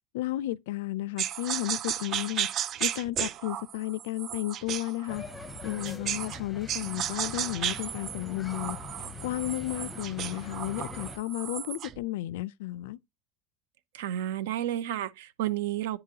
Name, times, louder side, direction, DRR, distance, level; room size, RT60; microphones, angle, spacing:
voice 1, 0.1-2.5 2.8-5.2 5.6-8.8 9.2-13.0, left 16 dB, 75° left, 0.4 m, -33 dB
sound 1, 1.2-6.4 6.7-12.0, right 10 dB, 30° right, 0.3 m, -34 dB
sound 2, 5.1-11.2, left 3 dB, 5° left, 0.7 m, -43 dB
voice 2, 13.9-16.0, right 12 dB, 80° right, 0.7 m, -31 dB
10.0 x 3.8 x 2.8 m
supercardioid pair, 175°, 0 cm